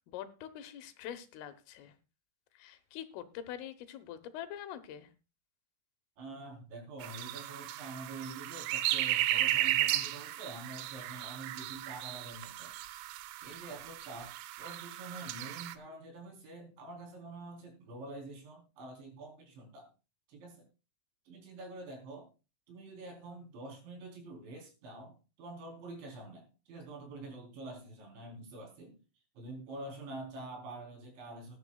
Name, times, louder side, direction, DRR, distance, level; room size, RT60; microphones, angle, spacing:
voice 1, 0.0-1.9 2.6-5.1, left 10 dB, 85° left, 10 dB, 3.7 m, -44 dB
voice 2, 6.2-12.8 13.4-19.9 20.3-20.7 21.3-22.3 22.7-29.0 29.4-31.6, right 2 dB, 65° right, 2 dB, 6.0 m, -46 dB
sound 1, 7.0-15.7, right 14 dB, 85° right, 3.4 m, -35 dB
19.5 x 11.0 x 2.3 m, 0.30 s
omnidirectional pair, 5.6 m